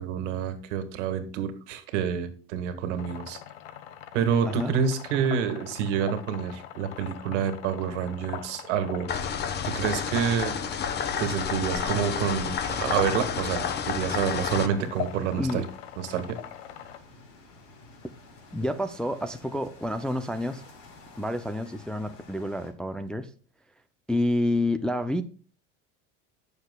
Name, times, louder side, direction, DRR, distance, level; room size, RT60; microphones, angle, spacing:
voice 1, 0.0-3.4 4.1-9.1 9.6-10.6 11.2-15.7 16.0-16.4, right 8 dB, 85° right, 1.7 m, -28 dB
sound 1, 2.9-17.0, left 11 dB, 85° left, 1.3 m, -42 dB
sound 2, 9.1-14.7, left 7 dB, 30° left, 0.9 m, -30 dB
sound 3, 11.2-22.7, left 3 dB, 55° left, 3.9 m, -52 dB
voice 2, 18.5-20.6 21.2-23.3 24.1-25.2, left 1 dB, 5° left, 0.3 m, -28 dB
16.0 x 6.6 x 2.2 m
supercardioid pair, 135°, 35 cm